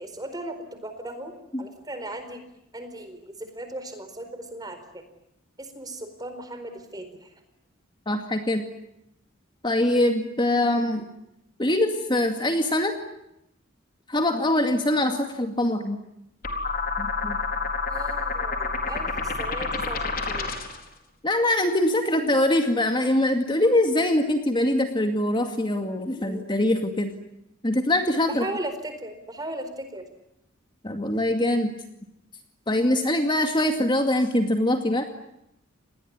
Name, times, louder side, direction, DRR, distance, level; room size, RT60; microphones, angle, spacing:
voice 1, 0.0-1.3 1.6-2.4 2.7-3.2 3.5-5.0 5.6-7.3 17.9-19.1 19.4-20.5 28.4-30.0, right 1 dB, 20° right, 8 dB, 4.3 m, -37 dB
voice 2, 8.1-8.6 9.6-11.0 11.6-13.0 14.1-16.0 17.0-17.4 21.2-27.1 27.6-28.4 30.8-31.7 32.7-35.1, left 1 dB, 20° left, 5 dB, 2.2 m, -23 dB
sound 1, 16.4-20.8, left 4 dB, 45° left, 4.4 m, -29 dB
29.0 x 20.5 x 9.7 m, 0.83 s
head